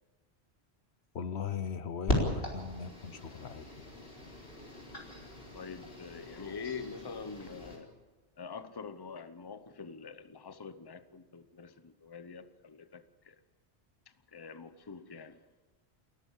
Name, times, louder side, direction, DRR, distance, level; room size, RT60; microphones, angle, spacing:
voice 1, 1.1-3.9, left 7 dB, 75° left, 13 dB, 1.2 m, -39 dB
sound 1, 2.1-7.8, left 1 dB, 60° left, 4.4 m, -37 dB
voice 2, 5.5-7.9 8.4-13.4 14.3-15.4, left 5 dB, 25° left, 12 dB, 0.8 m, -45 dB
29.0 x 14.0 x 7.3 m, 1.3 s
omnidirectional pair, 1.1 m